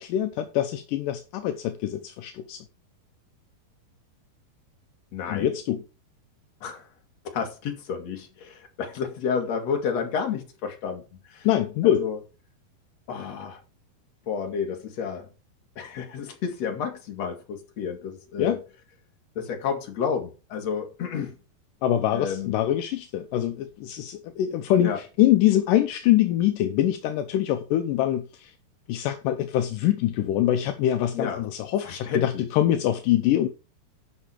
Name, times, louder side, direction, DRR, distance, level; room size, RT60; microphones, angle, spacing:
voice 1, 0.0-2.6 5.3-5.8 11.4-12.1 18.4-18.6 21.8-24.9 25.2-28.5 28.9-33.5, left 12 dB, 75° left, 2.1 m, -24 dB
voice 2, 5.1-5.5 6.6-6.9 7.2-11.5 11.8-12.2 13.1-13.6 14.2-15.3 15.8-18.6 19.3-21.4 22.1-22.6 24.8-25.0 31.1-31.4 31.8-32.5, left 6 dB, 50° left, 2.8 m, -31 dB
11.5 x 6.1 x 5.0 m
omnidirectional pair, 4.5 m